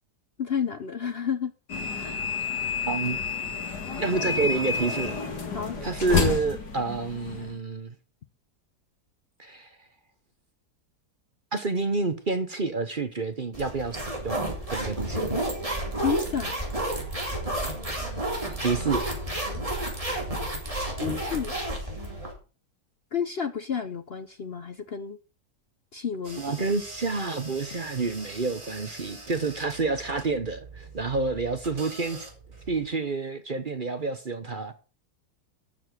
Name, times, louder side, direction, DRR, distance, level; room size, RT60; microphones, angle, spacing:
voice 1, 0.4-1.5 2.0-2.2 5.5-5.8 16.0-16.6 18.8-18.9 19.5-19.6 21.0-21.5 23.1-25.2 25.9-26.5, left 7 dB, 50° left, 0.8 m, -31 dB
sound 1, 1.7-7.5, left 5 dB, 90° left, 2.8 m, -29 dB
voice 2, 2.9-3.2 4.0-5.2 5.8-7.9 9.4-9.8 11.5-14.4 14.7-15.3 18.6-19.1 26.3-32.3 32.7-34.7, right 3 dB, 35° right, 1.0 m, -29 dB
sound 2, 13.5-22.3, right 1 dB, 20° right, 3.8 m, -31 dB
sound 3, 26.2-32.9, right 2 dB, 50° right, 4.9 m, -44 dB
12.5 x 7.1 x 6.2 m
omnidirectional pair, 1.7 m